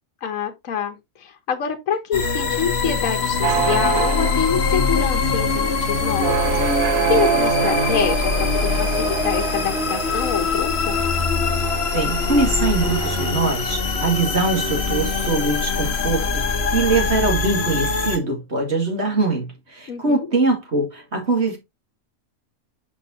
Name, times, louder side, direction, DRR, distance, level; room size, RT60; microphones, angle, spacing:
voice 1, 0.2-6.6 6.8-11.0 19.9-20.3, left 7 dB, 75° left, 1.4 m, -26 dB
sound 1, 2.1-18.2, left 4 dB, 55° left, 1.3 m, -23 dB
sound 2, 3.4-17.3, right 9 dB, 85° right, 1.2 m, -28 dB
voice 2, 11.9-21.6, right 3 dB, 55° right, 2.5 m, -22 dB
6.1 x 6.0 x 2.8 m
omnidirectional pair, 1.4 m